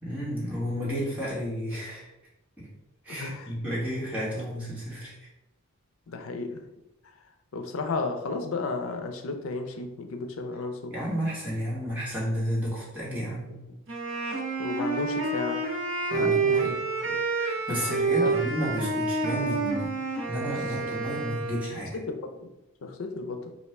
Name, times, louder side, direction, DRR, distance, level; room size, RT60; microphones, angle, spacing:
voice 1, 0.0-2.1 2.6-2.7 3.0-5.1 10.9-13.5 16.1-16.7 17.3-19.9 20.3-22.0, equal, 10° right, -8 dB, 1.4 m, -32 dB
voice 2, 3.1-3.5 6.1-6.6 7.5-11.0 14.6-15.7 16.1-16.7 17.0-17.2 17.7-18.5 21.9-22.5 22.8-23.6, left 3 dB, 85° left, 6 dB, 0.5 m, -33 dB
Wind instrument woodwind instrument, 13.9-21.8, right 3 dB, 70° right, 0.9 m, -28 dB
4.2 x 2.3 x 3.3 m, 0.91 s
head